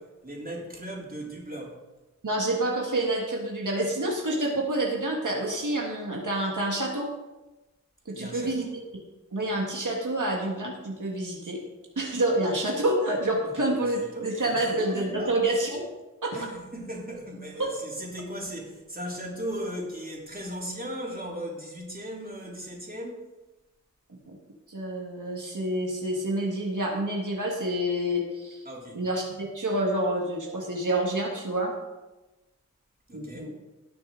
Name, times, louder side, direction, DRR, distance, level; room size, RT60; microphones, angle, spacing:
voice 1, 0.0-1.8 8.1-8.7 13.4-15.4 16.3-23.3 28.6-29.0 33.1-33.5, equal, 30° right, -3 dB, 3.3 m, -37 dB
voice 2, 2.2-7.1 8.0-8.7 9.3-11.6 11.9-15.9 16.2-16.4 17.6-17.7 24.1-24.4 24.7-28.6 28.9-31.7 33.1-33.5, right 1 dB, 85° right, -1 dB, 1.7 m, -28 dB
18.0 x 6.8 x 3.8 m, 1.1 s
wide cardioid pair, 45°, 30 cm